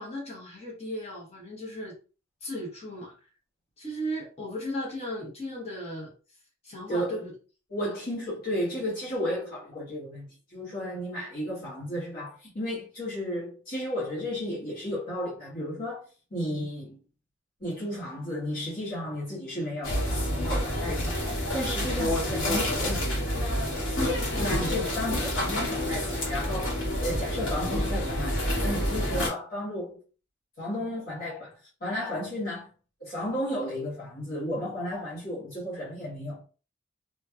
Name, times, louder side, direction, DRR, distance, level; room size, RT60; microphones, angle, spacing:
voice 1, 0.0-2.0 2.4-3.1 3.8-6.1 6.6-7.3 24.2-24.7, equal, 35° left, 1.3 m, -36 dB
voice 2, 6.9-7.3 7.7-16.0 16.3-17.0 17.6-21.2 21.5-23.4 24.3-26.7 27.0-30.0 30.6-32.7 33.0-36.4, left 1 dB, 50° left, 1.7 m, -33 dB
sound 1, 19.8-29.3, left 1 dB, 70° left, 1.5 m, -28 dB
3.0 x 2.9 x 2.4 m
head